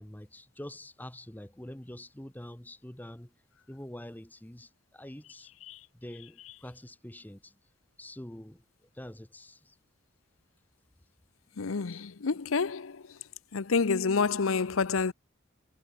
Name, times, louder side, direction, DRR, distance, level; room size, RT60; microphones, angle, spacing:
voice 1, 0.0-3.3 3.7-5.5 5.9-7.5 8.0-8.6 8.9-9.8, left 1 dB, 10° left, 0.9 m, -45 dB
voice 2, 11.6-13.0 13.5-15.1, left 4 dB, 85° left, 0.7 m, -28 dB
head